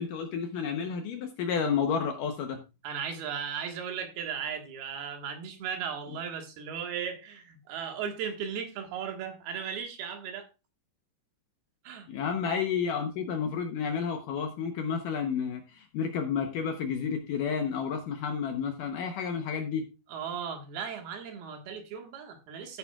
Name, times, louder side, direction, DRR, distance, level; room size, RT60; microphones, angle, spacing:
voice 1, 0.0-2.6 12.1-19.9, left 6 dB, 70° left, 2.1 m, -31 dB
voice 2, 2.8-10.5 11.8-12.1 20.1-22.8, right 7 dB, 70° right, 3.4 m, -36 dB
13.0 x 9.8 x 2.3 m
omnidirectional pair, 4.7 m